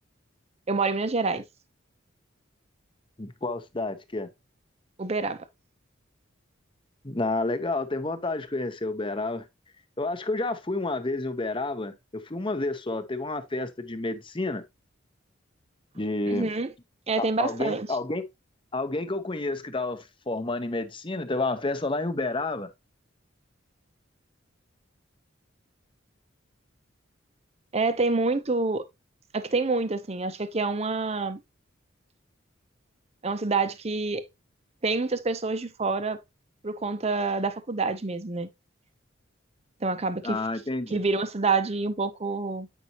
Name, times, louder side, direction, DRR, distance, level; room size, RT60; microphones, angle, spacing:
voice 1, 0.7-1.4 5.0-5.4 16.3-16.7 17.1-17.9 27.7-28.8 29.3-31.4 33.2-34.3 34.8-36.2 36.6-38.5 39.8-40.4 40.9-42.7, right 3 dB, 30° right, 0.6 m, -27 dB
voice 2, 3.2-4.3 7.0-9.4 10.0-14.6 15.9-16.5 17.2-18.2 18.7-22.7 40.2-41.0, left 2 dB, 25° left, 0.8 m, -30 dB
8.3 x 5.3 x 2.9 m
head